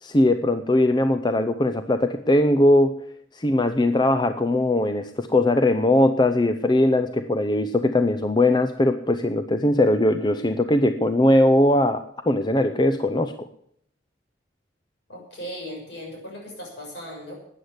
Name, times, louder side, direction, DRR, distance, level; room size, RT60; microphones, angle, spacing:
voice 1, 0.0-2.9 3.3-13.3, left 1 dB, 25° left, 9 dB, 0.6 m, -20 dB
voice 2, 15.1-17.3, equal, 60° left, 0 dB, 6.8 m, -37 dB
13.0 x 9.6 x 8.0 m, 0.70 s
head